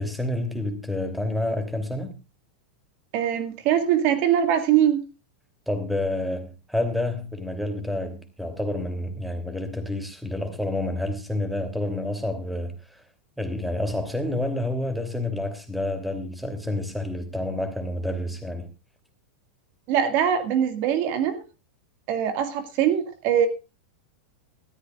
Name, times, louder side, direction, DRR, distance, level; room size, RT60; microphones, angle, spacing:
voice 1, 0.0-2.1 5.7-13.0 13.4-18.7, left 1 dB, ahead, 3.0 m, -29 dB
voice 2, 3.1-5.0 19.9-21.4 22.1-23.5, right 9 dB, 50° right, 1.9 m, -22 dB
19.0 x 14.0 x 2.4 m
hypercardioid pair, 130°, 5 cm